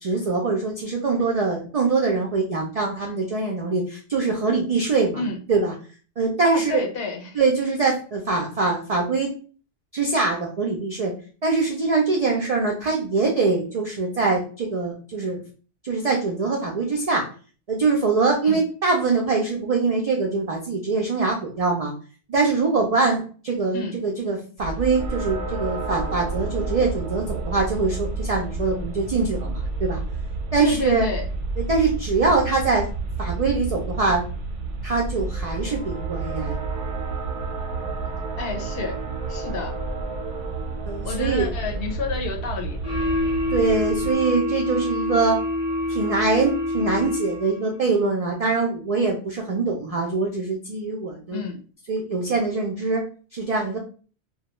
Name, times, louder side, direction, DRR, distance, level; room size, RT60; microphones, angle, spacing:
voice 1, 0.0-5.2 5.5-5.7 6.2-6.8 7.3-9.3 9.9-11.1 11.4-15.4 15.8-17.2 17.7-21.9 22.3-30.0 30.5-31.1 31.6-32.9 33.2-34.2 34.8-36.6 40.9-41.5 43.5-45.4 45.9-51.4 51.9-53.0 53.3-53.8, right 4 dB, 70° right, -1 dB, 0.3 m, -23 dB
voice 2, 6.4-7.4 18.4-18.6 23.7-24.0 30.6-31.2 38.4-39.0 39.3-39.7 41.0-42.8 51.3-51.6, left 4 dB, 65° left, 2 dB, 0.7 m, -30 dB
sound 1, 24.6-44.1, right 3 dB, 85° right, 0.9 m, -30 dB
sound 2, 42.8-47.7, left 1 dB, 15° left, 0.8 m, -26 dB
2.2 x 2.1 x 2.9 m, 0.39 s
omnidirectional pair, 1.2 m